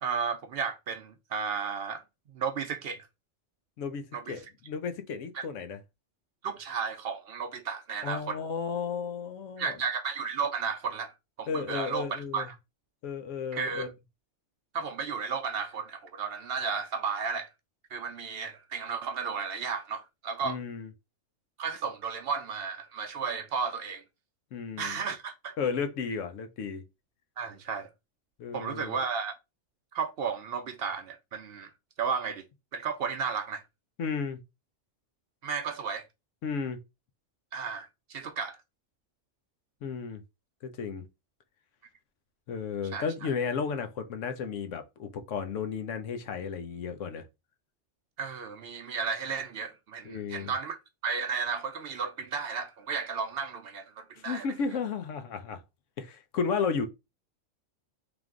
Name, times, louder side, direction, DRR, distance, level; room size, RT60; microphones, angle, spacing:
voice 1, 0.0-2.0 2.3-3.1 4.1-4.4 5.3-5.5 6.4-8.4 9.6-12.6 13.5-13.9 14.7-17.5 17.9-20.6 21.6-24.0 24.8-25.6 27.4-27.9 28.5-29.3 29.9-31.7 32.0-32.5 32.7-33.6 35.4-36.1 37.5-38.6 42.9-43.3 48.2-50.8 51.0-54.5, right 5 dB, 60° right, 0.7 m, -33 dB
voice 2, 4.3-5.8 8.0-9.8 11.5-12.5 13.0-13.9 20.4-20.9 24.5-25.0 25.6-26.8 28.4-29.0 34.0-34.4 36.4-36.8 39.8-40.2 40.6-41.0 42.5-47.2 50.0-50.5 54.2-55.6 56.0-56.9, left 5 dB, 75° left, 1.0 m, -33 dB
3.4 x 2.9 x 3.6 m
omnidirectional pair, 1.3 m